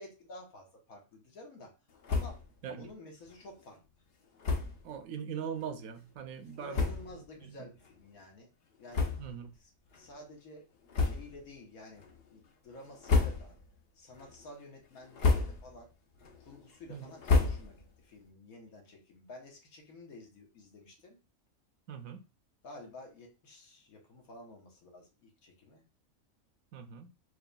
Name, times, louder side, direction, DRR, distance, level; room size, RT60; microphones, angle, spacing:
voice 1, 0.0-1.7 2.1-3.8 6.6-8.5 8.8-9.1 9.6-10.7 11.0-13.5 14.0-15.9 16.3-21.2 22.6-25.8, left 2 dB, 85° left, 1.6 m, -51 dB
sound 1, 2.0-2.5 2.9-3.0 3.3-3.4 4.4-4.8 5.6-5.7 6.4-6.5 6.7-7.3 7.8-7.9 8.9-9.6 9.9-10.1 10.9-11.5 11.9-12.4 12.9-13.7 14.1-14.6 15.0-15.8 16.2-18.0, left 4 dB, 55° left, 0.8 m, -31 dB
voice 2, 4.8-7.7 9.2-9.5 16.9-17.1 21.9-22.2 26.7-27.1, right 7 dB, 75° right, 1.0 m, -41 dB
4.6 x 3.3 x 2.3 m
omnidirectional pair, 1.5 m